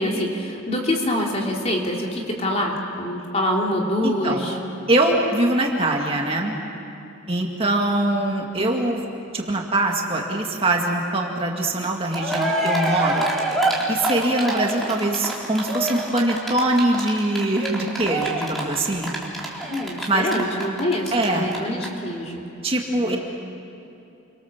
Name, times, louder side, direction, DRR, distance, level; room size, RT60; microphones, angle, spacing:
voice 1, 0.0-4.6 19.7-22.4 23.0-23.2, left 1 dB, 30° left, -1 dB, 3.2 m, -25 dB
voice 2, 4.0-4.5 4.9-6.6 7.3-9.0 9.3-13.3 13.9-19.1 20.1-20.4 21.1-21.5 22.6-23.2, right 1 dB, 25° right, 0 dB, 2.2 m, -23 dB
Cheering, 11.8-11.9 12.1-21.2 21.5-21.6 21.8-21.9, right 1 dB, ahead, 3.6 m, -26 dB
30.0 x 25.0 x 7.3 m, 2.8 s
head